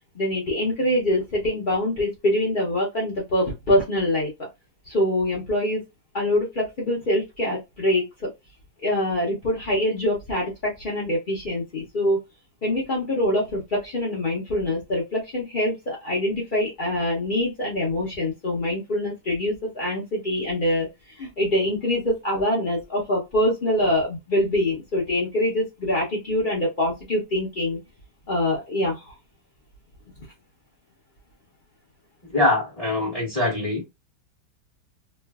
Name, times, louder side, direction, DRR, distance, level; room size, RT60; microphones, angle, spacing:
voice 1, 0.1-4.5 4.9-5.8 6.1-8.3 8.8-12.2 12.6-27.8 28.3-29.1, left 1 dB, 55° left, 0.5 m, -24 dB
voice 2, 32.3-33.8, left 2 dB, 20° left, 1.1 m, -23 dB
3.1 x 2.4 x 2.3 m
omnidirectional pair, 2.1 m